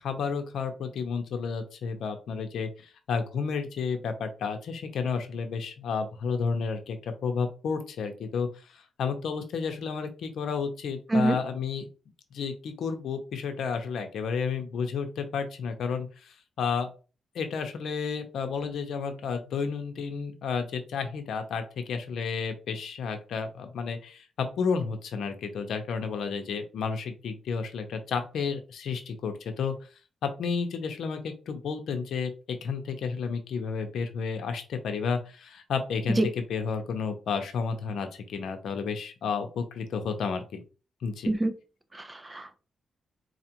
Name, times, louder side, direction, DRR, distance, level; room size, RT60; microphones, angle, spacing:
voice 1, 0.0-11.9 12.3-16.9 17.3-29.7 30.2-40.6 41.0-41.3, left 5 dB, 80° left, 6 dB, 0.7 m, -31 dB
voice 2, 41.9-42.5, right 1 dB, 20° right, 8 dB, 0.6 m, -25 dB
4.2 x 2.4 x 2.9 m, 0.34 s
cardioid pair, 85°, 0 cm